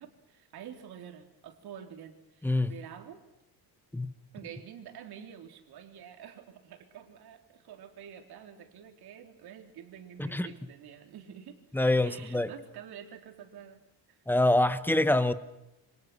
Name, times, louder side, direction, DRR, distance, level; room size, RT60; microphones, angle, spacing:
voice 1, 0.0-3.2 4.3-11.6 12.0-13.8 14.1-14.2, right 9 dB, 60° right, 4.1 m, -48 dB
voice 2, 2.4-2.7 3.9-4.1 10.2-10.5 11.7-12.5 14.3-15.3, left 1 dB, 5° left, 1.1 m, -25 dB
28.0 x 25.0 x 6.2 m
cardioid pair, 145°, 42 cm